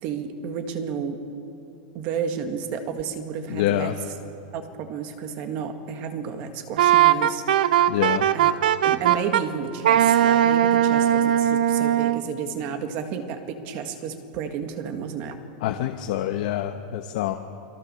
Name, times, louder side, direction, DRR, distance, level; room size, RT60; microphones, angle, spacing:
voice 1, 0.0-1.2 1.9-4.0 4.5-7.5 8.3-8.5 8.8-15.4, right 7 dB, 35° right, 7 dB, 1.9 m, -31 dB
voice 2, 3.5-3.9 7.9-8.3 15.6-17.3, left 13 dB, 55° left, 6 dB, 1.1 m, -26 dB
Wind instrument woodwind instrument, 6.8-9.4 9.8-12.2, right 11 dB, 80° right, 0.9 m, -19 dB
29.5 x 22.5 x 6.9 m, 2.8 s
supercardioid pair, 180°, 5 cm